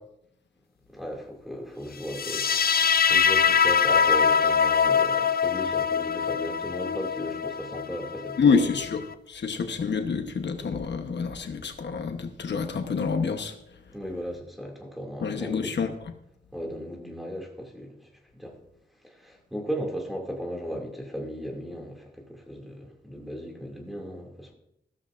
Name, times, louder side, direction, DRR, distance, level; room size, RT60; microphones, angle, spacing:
voice 1, 0.9-8.8 13.9-15.7 16.5-18.0 18.3-18.6 19.0-24.5, equal, ahead, 0 dB, 2.4 m, -36 dB
sound 1, 2.1-9.1, left 7 dB, 60° left, 0.5 m, -23 dB
voice 2, 8.4-9.0 9.3-13.6 15.2-15.9, left 5 dB, 85° left, 6 dB, 1.0 m, -27 dB
14.5 x 13.5 x 2.5 m, 0.79 s
wide cardioid pair, 140°, 18 cm